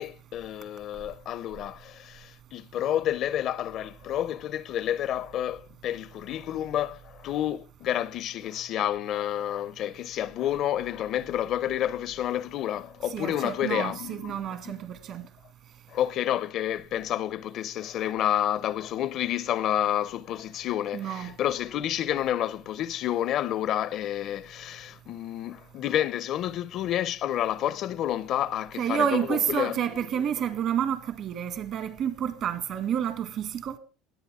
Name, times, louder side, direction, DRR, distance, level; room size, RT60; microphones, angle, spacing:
voice 1, 0.0-14.8 15.9-29.9 30.1-30.2, left 11 dB, 55° left, 0.5 m, -29 dB
voice 2, 13.1-15.3 20.9-21.3 28.8-33.8, right 8 dB, 55° right, 2.0 m, -29 dB
20.0 x 8.5 x 3.5 m
supercardioid pair, 105°, 0 cm